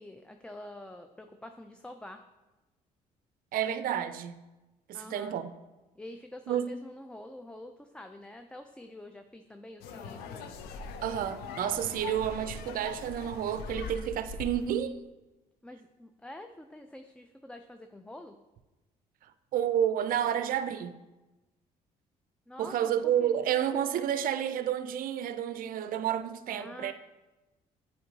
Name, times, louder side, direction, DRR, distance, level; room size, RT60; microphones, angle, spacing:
voice 1, 0.0-2.2 4.9-5.4 6.0-10.5 15.6-18.4 22.5-22.9 23.2-23.3 26.5-26.9, left 1 dB, 5° left, 0.4 m, -47 dB
voice 2, 3.5-4.4 4.9-5.5 6.5-6.7 11.0-15.0 19.5-20.9 22.6-26.9, right 10 dB, 60° right, 0.4 m, -30 dB
sound 1, 9.8-14.8, left 5 dB, 80° left, 0.6 m, -41 dB
8.3 x 4.5 x 2.8 m
supercardioid pair, 65°, 16 cm